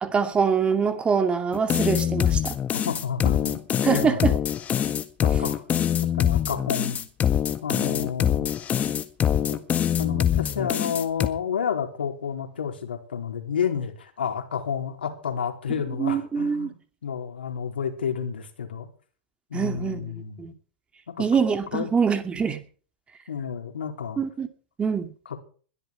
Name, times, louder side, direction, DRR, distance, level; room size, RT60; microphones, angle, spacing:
voice 1, 0.0-2.6 3.8-4.3 16.0-16.7 19.5-20.5 21.2-22.6 24.2-24.5 24.8-25.1, right 6 dB, 20° right, 2.4 m, -24 dB
sound 1, 1.5-11.3, left 10 dB, 25° left, 1.7 m, -24 dB
voice 2, 2.7-4.2 5.2-5.6 6.1-7.0 7.6-8.5 9.4-9.6 10.0-16.7 17.0-18.9 19.5-20.5 21.2-21.3 21.7-21.9 23.3-24.2 25.3-25.4, left 7 dB, 80° left, 4.1 m, -30 dB
21.0 x 12.5 x 4.7 m
hypercardioid pair, 105°, 5 cm